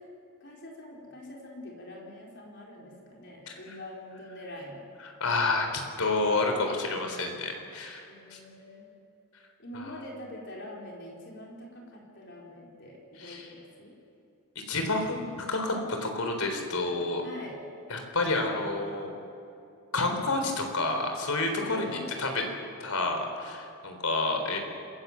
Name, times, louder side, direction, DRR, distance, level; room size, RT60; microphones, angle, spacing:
voice 1, 0.4-4.9 6.9-7.2 8.1-8.9 9.6-13.9 17.2-17.5 21.6-22.1, left 1 dB, 50° left, -2 dB, 4.6 m, -44 dB
voice 2, 3.5-3.8 5.0-8.4 9.7-10.0 13.1-13.5 14.7-17.2 17.9-19.1 19.9-22.4 22.8-24.6, left 2 dB, 80° left, 4 dB, 4.0 m, -29 dB
27.0 x 16.0 x 7.5 m, 2.6 s
head